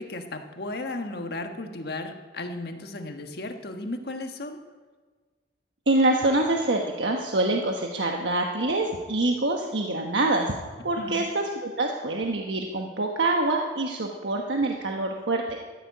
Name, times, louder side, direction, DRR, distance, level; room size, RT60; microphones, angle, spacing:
voice 1, 0.0-4.6 11.0-11.3, left 2 dB, 60° left, 5 dB, 1.5 m, -35 dB
voice 2, 5.9-10.5 10.8-15.4, right 2 dB, 85° right, 1 dB, 1.2 m, -25 dB
13.0 x 11.5 x 8.4 m, 1.4 s
head